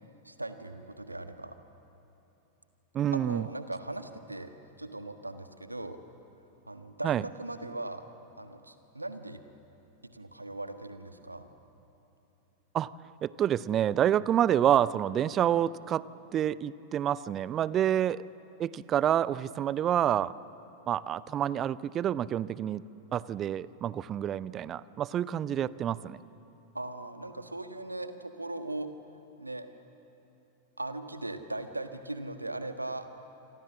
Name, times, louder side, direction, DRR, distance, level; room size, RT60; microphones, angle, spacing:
voice 1, 0.2-1.6 3.1-4.5 4.8-6.0 6.7-8.0 8.4-9.4 10.0-11.5 26.7-29.7 30.8-33.3, right 2 dB, 85° right, 8 dB, 1.5 m, -39 dB
voice 2, 2.9-3.5 7.0-7.2 12.7-12.9 13.2-16.0 16.3-18.2 18.6-20.3 20.9-22.8 23.1-26.2, right 10 dB, 30° right, 19 dB, 0.6 m, -28 dB
27.5 x 26.0 x 7.4 m, 3.0 s
figure-of-eight pair, 90°, 0 cm